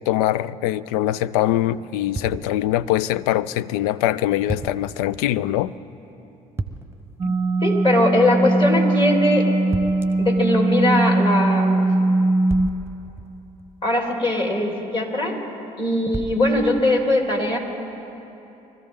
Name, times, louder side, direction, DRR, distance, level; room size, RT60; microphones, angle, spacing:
voice 1, 0.1-5.7 7.2-7.3, left 13 dB, 75° left, 0.4 m, -23 dB
sound 1, 2.2-2.9 4.5-5.0 6.6-7.2 9.7-10.3 12.5-13.9 16.1-17.0, right 3 dB, 10° right, 1.0 m, -33 dB
sound 2, 7.2-12.7, right 2 dB, 30° right, 0.5 m, -20 dB
voice 2, 7.6-9.5 10.2-11.9 13.8-15.4 15.8-17.6, left 1 dB, 25° left, 3.4 m, -20 dB
24.0 x 14.0 x 3.8 m
hypercardioid pair, 55°, 19 cm